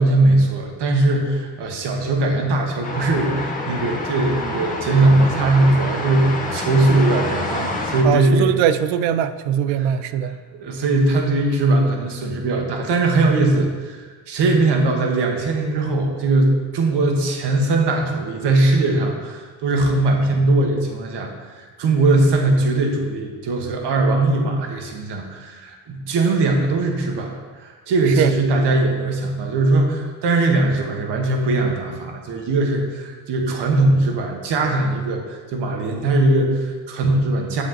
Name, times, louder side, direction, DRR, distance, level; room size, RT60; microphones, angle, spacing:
voice 1, 0.0-8.5 9.7-9.9 10.6-14.0 14.3-27.3 27.6-37.6, right 2 dB, 65° right, 2 dB, 1.5 m, -20 dB
sound 1, 2.8-8.0, left 2 dB, 20° left, 1.7 m, -27 dB
voice 2, 8.0-10.4 28.2-28.3, right 9 dB, 85° right, 12 dB, 0.6 m, -20 dB
8.4 x 7.4 x 3.0 m, 1.4 s
supercardioid pair, 75°, 45 cm